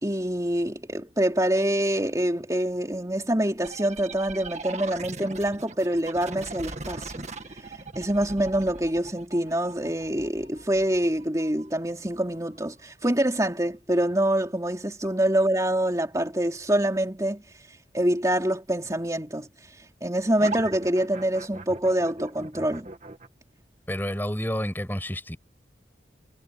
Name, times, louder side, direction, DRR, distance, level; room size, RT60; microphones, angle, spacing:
voice 1, 0.0-7.3 7.9-17.4 17.9-19.5 20.0-22.9, right 1 dB, 20° right, 3.1 m, -25 dB
sound 1, 3.6-13.0 20.4-23.3, right 3 dB, 40° right, 1.8 m, -40 dB
voice 2, 23.9-25.4, equal, 10° left, 6.2 m, -30 dB
head